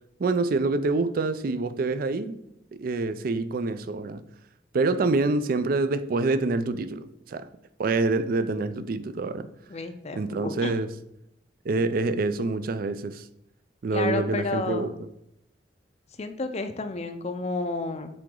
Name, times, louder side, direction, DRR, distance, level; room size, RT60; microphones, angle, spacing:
voice 1, 0.2-2.4 2.7-4.2 4.7-7.5 7.8-9.5 10.1-10.9 11.7-13.3 13.8-14.9, right 3 dB, 50° right, 0.4 m, -26 dB
voice 2, 9.7-10.7 13.9-14.9 16.2-18.1, left 3 dB, 35° left, 0.5 m, -31 dB
7.7 x 3.9 x 3.7 m
head